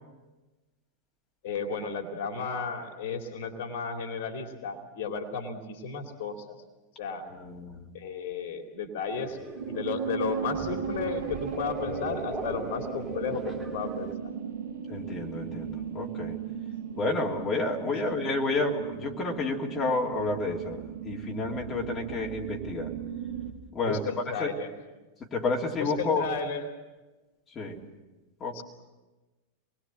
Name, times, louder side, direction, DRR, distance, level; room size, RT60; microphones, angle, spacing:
voice 1, 1.4-6.6 7.0-7.3 7.9-14.1 16.9-17.0 17.5-18.3 22.1-22.2 23.8-24.7 25.8-26.8 28.5-28.6, left 5 dB, 55° left, 4 dB, 2.9 m, -34 dB
voice 2, 7.4-7.9 14.9-16.4 17.0-22.9 23.7-24.0 24.4-24.5 25.3-26.3 27.5-27.8 28.4-28.6, left 3 dB, 20° left, -1 dB, 3.0 m, -30 dB
sound 1, 9.1-14.2, right 1 dB, 15° right, 4.3 m, -39 dB
sound 2, 9.6-23.5, right 7 dB, 60° right, 2.4 m, -37 dB
26.5 x 21.5 x 7.7 m, 1.2 s
figure-of-eight pair, 90°, 0 cm